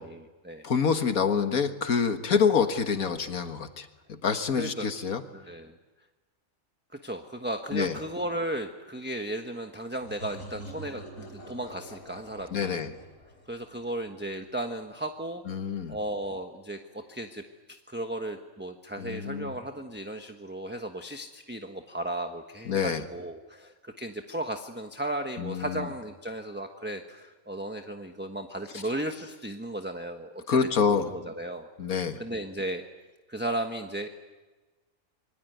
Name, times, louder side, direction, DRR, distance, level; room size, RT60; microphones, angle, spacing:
voice 1, 0.0-0.6 4.5-4.9 5.3-5.8 7.0-12.9 13.5-15.4 15.9-17.4 17.9-30.6 30.9-31.7 32.2-32.9 33.3-34.1, right 1 dB, 10° right, 5 dB, 1.2 m, -35 dB
voice 2, 0.6-5.2 7.7-8.0 12.5-12.9 15.5-16.0 19.0-19.5 22.7-23.0 25.4-25.9 30.5-31.1 31.8-32.2, left 6 dB, 85° left, 7 dB, 2.0 m, -27 dB
sound 1, 10.0-14.6, right 1 dB, 65° left, 4.6 m, -46 dB
27.0 x 23.5 x 9.3 m, 1.2 s
omnidirectional pair, 1.4 m